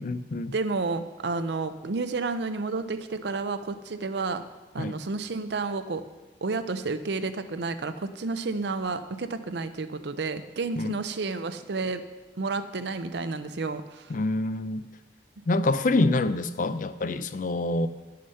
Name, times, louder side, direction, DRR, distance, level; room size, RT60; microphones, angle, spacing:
voice 1, 0.0-0.5 4.8-5.0 10.8-11.0 14.1-14.9 15.5-17.9, left 2 dB, 45° left, 12 dB, 0.4 m, -26 dB
voice 2, 0.5-4.4 4.7-6.0 6.4-12.0 12.4-14.0, right 3 dB, 65° right, 10 dB, 0.6 m, -31 dB
11.0 x 6.5 x 5.5 m, 1.2 s
head